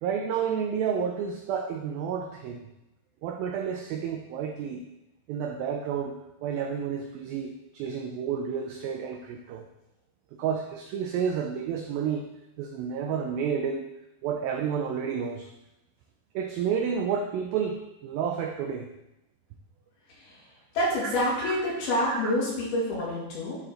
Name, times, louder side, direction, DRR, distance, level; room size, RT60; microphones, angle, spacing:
voice 1, 0.0-2.6 3.2-4.8 5.3-6.2 6.4-9.7 10.4-12.3 12.6-13.9 14.2-15.5 16.4-18.9 21.0-21.1 21.4-21.6 22.1-22.4, right 7 dB, 85° right, 4 dB, 2.1 m, -30 dB
voice 2, 20.7-23.6, left 1 dB, 65° left, -6 dB, 4.1 m, -27 dB
11.5 x 4.4 x 3.8 m, 0.91 s
omnidirectional pair, 4.9 m